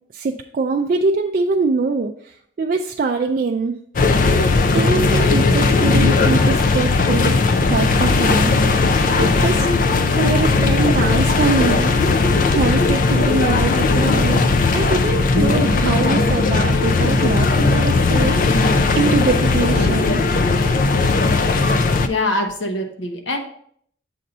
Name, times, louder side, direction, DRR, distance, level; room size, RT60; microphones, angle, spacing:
voice 1, 0.1-3.8 4.7-8.6 8.9-9.7 10.2-11.9 12.5-14.4 14.7-20.2, right 4 dB, 45° right, 3 dB, 0.3 m, -23 dB
sound 1, 4.0-22.1, left 3 dB, 45° left, 0.4 m, -17 dB
voice 2, 22.1-23.4, left 2 dB, 90° left, 3 dB, 1.1 m, -23 dB
7.5 x 2.7 x 5.4 m, 0.64 s
head